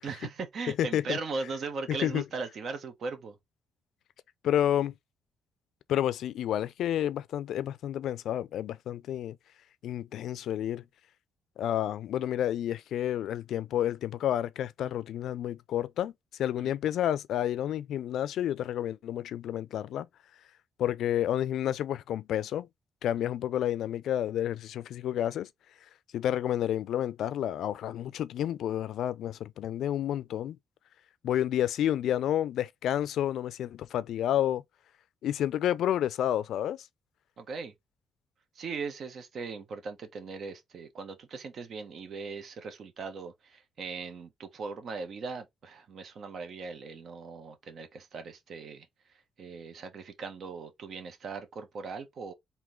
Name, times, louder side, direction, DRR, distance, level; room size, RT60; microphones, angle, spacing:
voice 1, 0.0-3.4 16.6-16.7 37.4-37.7 38.6-48.9 49.4-52.3, right 4 dB, 60° right, 1.1 m, -39 dB
voice 2, 0.8-1.2 2.0-2.2 4.4-4.9 5.9-9.4 9.8-10.8 11.6-16.1 16.4-20.1 20.8-22.7 23.0-25.5 26.1-30.6 31.2-34.6 35.2-36.8, left 11 dB, 75° left, 0.4 m, -30 dB
3.7 x 2.8 x 4.6 m
cardioid pair, 90°, 0 cm